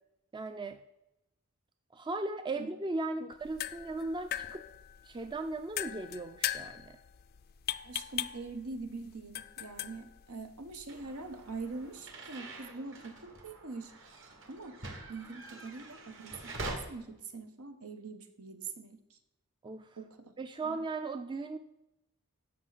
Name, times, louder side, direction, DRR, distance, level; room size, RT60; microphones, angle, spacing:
voice 1, 0.3-0.8 1.9-4.6 5.0-7.0 19.6-20.0 20.4-21.6, right 2 dB, 20° right, 8 dB, 0.4 m, -37 dB
sound 1, 3.3-11.9, left 12 dB, 45° left, 0.4 m, -41 dB
voice 2, 7.8-13.9 14.4-14.8 15.1-19.2 20.0-20.3, right 3 dB, 90° right, 7 dB, 1.2 m, -43 dB
sound 2, 10.9-16.7, right 2 dB, 60° right, 1.9 m, -45 dB
15.0 x 5.6 x 4.1 m, 0.88 s
head